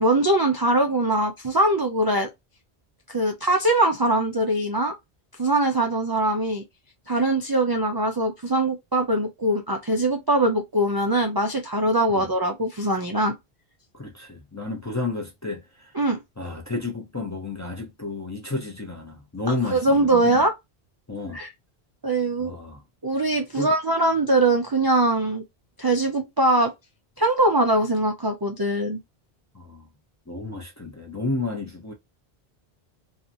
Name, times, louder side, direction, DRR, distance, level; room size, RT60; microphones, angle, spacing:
voice 1, 0.0-2.3 3.1-4.9 5.4-6.6 7.1-13.3 15.9-16.2 19.7-20.5 21.3-21.5 22.0-22.6 23.0-25.4 25.8-26.7 27.2-29.0, right 2 dB, 40° right, 0.3 m, -22 dB
voice 2, 13.9-16.0 16.4-20.4 21.1-21.4 22.4-22.8 23.5-23.7 29.5-29.9 30.3-31.9, left 3 dB, 20° left, 0.5 m, -31 dB
2.7 x 2.4 x 2.5 m
omnidirectional pair, 1.1 m